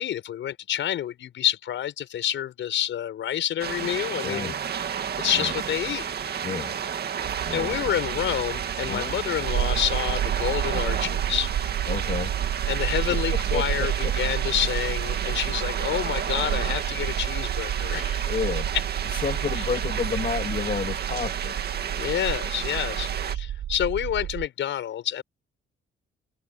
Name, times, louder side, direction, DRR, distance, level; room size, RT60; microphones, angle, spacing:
voice 1, 0.0-4.6 5.2-6.0 7.5-11.5 12.7-18.3 22.0-25.2, left 11 dB, 70° left, 5.6 m, -28 dB
sound 1, 3.6-23.4, right 8 dB, 55° right, 2.1 m, -32 dB
voice 2, 4.2-4.6 5.3-5.5 6.4-6.7 7.5-7.8 8.9-9.1 11.9-12.5 13.5-14.1 18.3-18.7 19.0-21.6, left 6 dB, 40° left, 2.2 m, -31 dB
sound 2, 7.2-24.5, right 11 dB, 75° right, 4.8 m, -30 dB
open air
cardioid pair, 90°, 20 cm